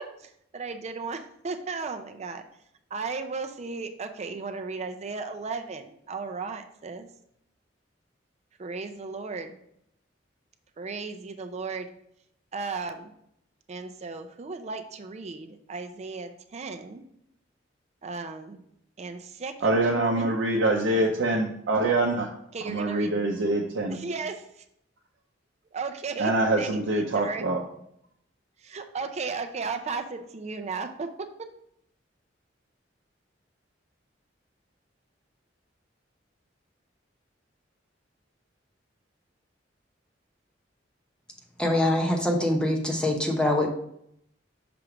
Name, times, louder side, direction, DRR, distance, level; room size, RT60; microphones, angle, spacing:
voice 1, 0.0-2.4 2.9-7.1 8.6-9.5 10.8-11.9 12.5-13.1 13.7-17.0 18.0-18.6 19.0-20.6 22.5-23.2 23.9-24.6 25.7-26.3 26.6-27.4 28.6-31.3, right 4 dB, 35° right, 7 dB, 0.5 m, -35 dB
voice 2, 19.6-22.3 22.6-24.0 26.2-27.6, right 2 dB, 75° right, -1 dB, 0.6 m, -25 dB
voice 3, 41.6-43.7, left 1 dB, 5° left, 0 dB, 0.8 m, -24 dB
5.9 x 3.2 x 4.9 m, 0.73 s
head